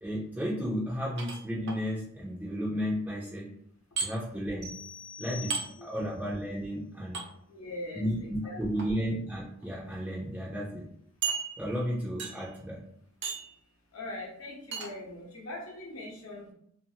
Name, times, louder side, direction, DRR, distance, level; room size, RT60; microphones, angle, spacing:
voice 1, 0.0-3.5 4.0-4.8 5.2-7.2 7.9-10.9 11.6-12.8, equal, 10° right, -6 dB, 0.4 m, -33 dB
sound 1, 1.2-1.8 4.0-4.1 5.5-5.7 7.1-7.3 8.6-8.9 9.6-9.7 10.1-10.2 11.2-11.8 12.2-12.5 13.2-13.5 14.7-14.9, right 5 dB, 55° right, 0.5 m, -34 dB
sound 2, 4.6-6.1, left 5 dB, 90° right, 0.9 m, -45 dB
voice 2, 5.6-6.1 7.5-8.9 13.9-16.5, left 1 dB, 80° left, -1 dB, 0.8 m, -42 dB
2.5 x 2.4 x 2.7 m, 0.69 s
head